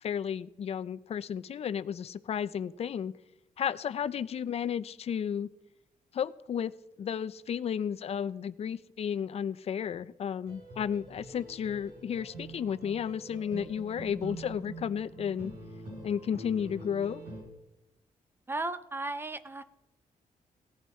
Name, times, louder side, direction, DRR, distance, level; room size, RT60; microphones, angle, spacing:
voice 1, 0.0-3.1 3.6-5.5 6.1-6.7 7.0-15.5 16.0-17.2, left 8 dB, 45° left, 16 dB, 0.5 m, -33 dB
sound 1, 10.5-17.4, right 2 dB, 85° right, 6.3 m, -45 dB
voice 2, 18.5-19.6, right 2 dB, 15° right, 13 dB, 0.5 m, -35 dB
17.5 x 10.5 x 4.3 m, 0.95 s
wide cardioid pair, 165°, 14 cm